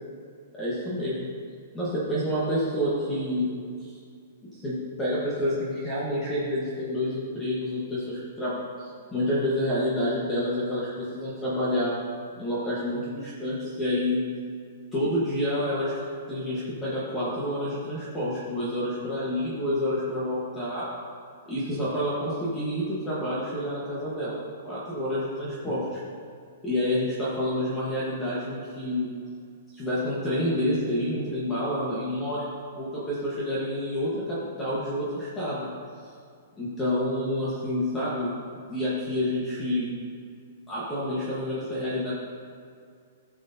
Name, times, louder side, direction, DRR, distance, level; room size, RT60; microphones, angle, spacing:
voice 1, 0.6-1.3 1.7-3.5 3.8-4.0 4.5-11.9 12.4-14.2 14.9-16.0 16.3-20.9 21.5-24.3 24.6-26.0 26.6-29.1 29.7-32.5 32.8-35.7 36.6-38.3 38.7-39.9 40.7-42.1, left 1 dB, 10° left, -9 dB, 1.2 m, -28 dB
15.5 x 6.3 x 2.7 m, 2.3 s
hypercardioid pair, 180°, 0 cm